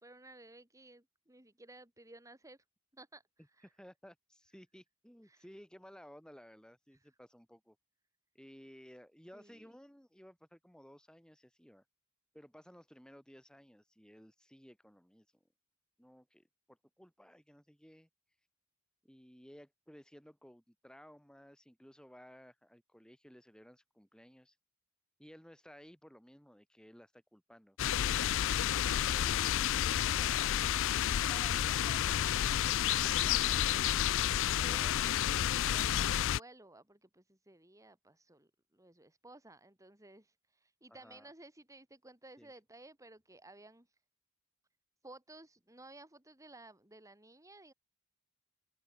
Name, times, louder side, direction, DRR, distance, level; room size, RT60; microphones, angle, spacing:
voice 1, 0.0-2.6 2.9-3.7 5.2-5.5 6.9-7.0 9.3-9.7 28.7-33.9 34.4-43.9 45.0-47.7, right 2 dB, 15° right, 4.0 m, -56 dB
voice 2, 3.6-7.8 8.3-11.8 12.3-15.3 16.0-18.1 19.0-24.5 25.2-27.8 40.9-41.3 42.4-42.5, equal, 5° left, 5.5 m, -57 dB
sound 1, 27.8-36.4, left 11 dB, 60° left, 0.4 m, -30 dB
head